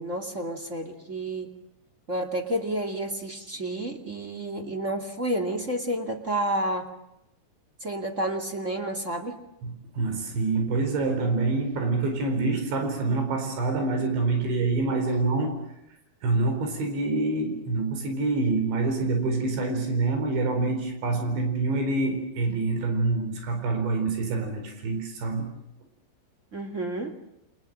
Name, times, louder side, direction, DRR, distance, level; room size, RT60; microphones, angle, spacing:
voice 1, 0.0-1.5 2.1-6.9 7.8-9.3 26.5-27.1, right 1 dB, 25° right, 4 dB, 1.7 m, -30 dB
voice 2, 9.6-15.7 16.2-25.5, right 3 dB, 90° right, 5 dB, 6.7 m, -26 dB
29.5 x 26.5 x 7.6 m, 0.84 s
omnidirectional pair, 5.1 m